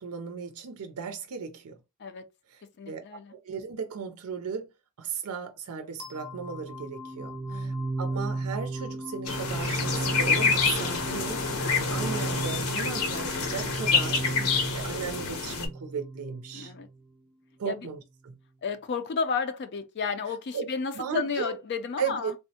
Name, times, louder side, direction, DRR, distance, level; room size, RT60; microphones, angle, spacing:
voice 1, 0.0-1.8 2.5-4.7 5.0-14.3 14.7-16.7 17.6-18.3 20.5-20.7 21.0-21.6 22.0-22.3, right 6 dB, 90° right, 0.5 m, -36 dB
voice 2, 2.8-3.3 7.5-7.7 14.3-14.8 16.5-16.9 17.7-17.9 18.6-22.3, left 5 dB, 50° left, 0.4 m, -32 dB
sound 1, 6.0-16.9, right 2 dB, 5° right, 0.6 m, -34 dB
sound 2, 9.3-15.7, left 5 dB, 75° left, 0.8 m, -27 dB
3.4 x 2.0 x 2.7 m
head